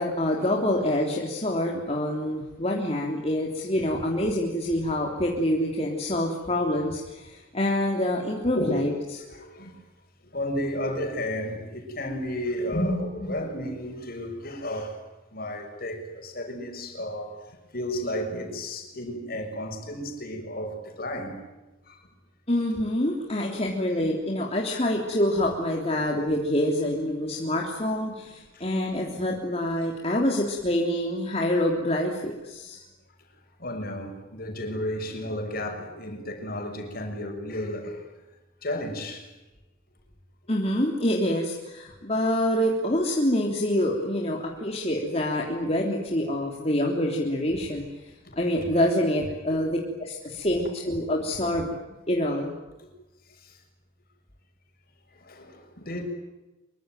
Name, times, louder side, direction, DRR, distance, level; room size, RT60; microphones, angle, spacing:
voice 1, 0.0-8.9 12.7-13.4 22.5-32.8 40.5-48.0 48.4-51.7 52.1-52.5, left 1 dB, 30° left, 3.4 m, -26 dB
voice 2, 8.5-8.9 9.3-9.8 10.3-15.0 15.3-17.3 17.7-21.4 21.9-22.0 28.5-28.6 33.6-38.0 38.6-39.3 48.2-48.4 52.8-52.9 53.4-53.5 55.3-56.0, left 1 dB, 50° left, 6.8 m, -33 dB
26.5 x 24.5 x 9.2 m
head